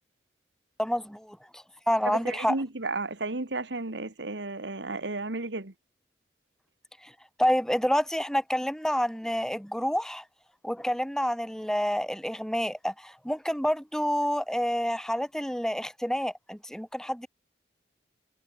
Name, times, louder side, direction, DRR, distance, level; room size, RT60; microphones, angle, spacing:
voice 1, 0.8-2.6 7.0-7.1 7.4-10.2 10.6-17.3, equal, 5° left, 2.8 m, -28 dB
voice 2, 2.1-5.7, right 2 dB, 90° right, 1.9 m, -33 dB
head